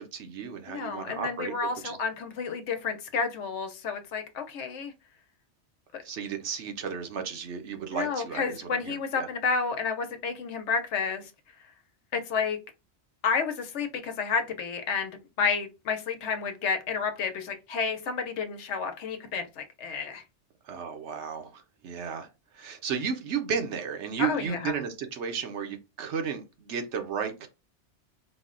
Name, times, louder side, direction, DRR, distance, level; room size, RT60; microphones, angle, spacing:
voice 1, 0.0-2.0 6.0-9.3 20.6-22.3 22.5-27.5, right 7 dB, 75° right, 1.0 m, -34 dB
voice 2, 0.7-4.9 5.9-6.0 7.9-11.2 12.1-12.6 13.2-20.2 24.2-24.8, left 5 dB, 75° left, 1.0 m, -30 dB
4.0 x 2.1 x 3.7 m
omnidirectional pair, 1.2 m